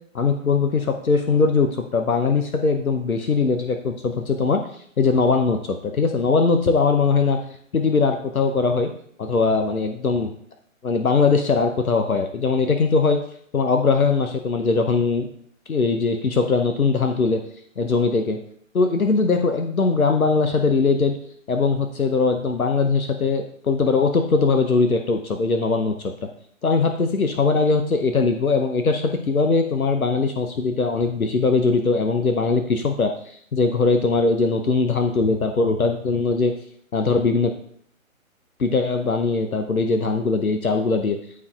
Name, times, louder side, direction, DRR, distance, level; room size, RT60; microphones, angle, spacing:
voice 1, 0.1-4.6 5.0-7.4 7.7-8.9 9.2-10.3 10.8-13.2 13.5-15.3 15.7-17.4 17.8-18.4 18.7-21.2 21.5-25.9 26.2-26.3 26.6-36.5 36.9-37.5 38.6-41.2, left 4 dB, 90° left, 5 dB, 0.8 m, -20 dB
13.0 x 4.7 x 2.4 m, 0.64 s
figure-of-eight pair, 135°, 42 cm